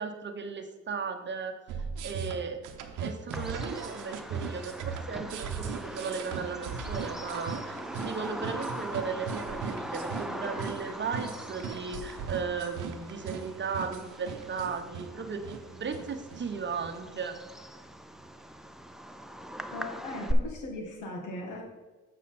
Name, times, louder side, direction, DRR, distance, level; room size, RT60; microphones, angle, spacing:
voice 1, 0.0-1.5 2.0-2.6 3.0-17.4, right 5 dB, 40° right, 7 dB, 0.9 m, -36 dB
sound 1, 1.7-17.0, right 6 dB, 85° right, 0.8 m, -39 dB
Bird vocalization bird call bird song, 3.3-20.3, right 1 dB, ahead, 0.5 m, -41 dB
voice 2, 19.7-21.6, left 2 dB, 80° left, 1 dB, 2.0 m, -38 dB
7.3 x 6.4 x 4.2 m, 1.2 s
cardioid pair, 90°, 30 cm